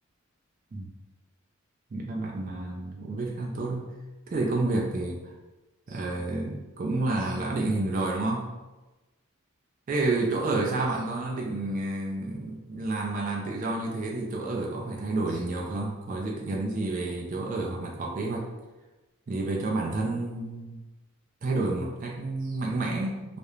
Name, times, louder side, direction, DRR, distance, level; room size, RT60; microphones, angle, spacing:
voice 1, 1.9-3.9 4.3-5.2 5.9-8.5 9.9-18.5 19.3-20.8 21.4-23.4, right 2 dB, 40° right, -1 dB, 0.3 m, -30 dB
2.3 x 2.1 x 3.0 m, 1.1 s
head